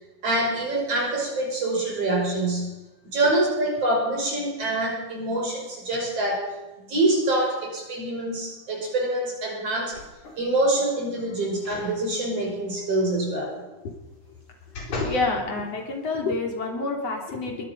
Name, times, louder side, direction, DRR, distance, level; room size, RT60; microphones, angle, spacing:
voice 1, 0.2-2.8 3.1-6.5 6.9-10.0 10.4-13.6, right 2 dB, 50° right, 0 dB, 6.6 m, -25 dB
sound 1, 9.9-10.5 11.6-11.9 12.4-12.5 14.1-15.3 15.9-16.0, left 1 dB, 75° left, 5.9 m, -36 dB
voice 2, 14.9-17.7, left 3 dB, 55° left, 2 dB, 4.0 m, -28 dB
22.5 x 21.5 x 5.4 m, 1.0 s
omnidirectional pair, 3.5 m